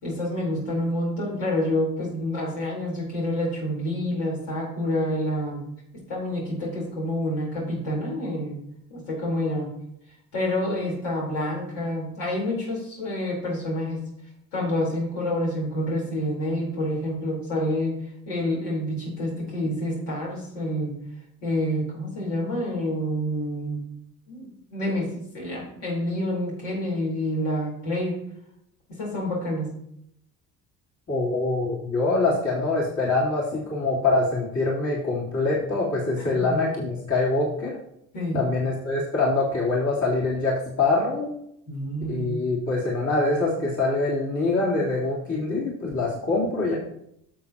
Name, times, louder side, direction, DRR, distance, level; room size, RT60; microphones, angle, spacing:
voice 1, 0.0-5.6 6.1-8.6 8.9-9.7 10.3-14.0 14.5-17.9 18.3-20.9 21.4-23.8 24.3-28.2 28.9-29.7 36.2-36.6 38.1-38.4 41.7-42.4, left 1 dB, 70° left, -4 dB, 4.2 m, -28 dB
voice 2, 31.1-37.8 38.3-41.3 42.1-46.7, left 3 dB, 40° left, -6 dB, 3.7 m, -24 dB
12.0 x 7.3 x 3.0 m, 0.75 s
hypercardioid pair, 60°, 43 cm